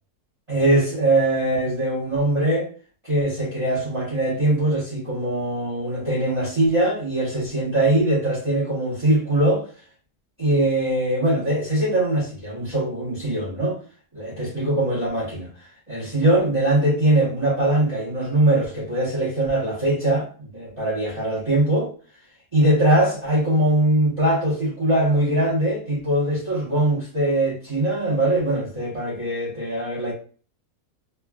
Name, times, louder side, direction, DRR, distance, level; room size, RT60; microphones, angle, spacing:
voice 1, 0.5-2.7 3.0-9.6 10.4-13.8 14.1-15.5 15.9-20.3 20.5-21.9 22.5-30.1, right 1 dB, 25° right, 0.9 m, -21 dB
3.3 x 2.3 x 2.2 m
omnidirectional pair, 1.6 m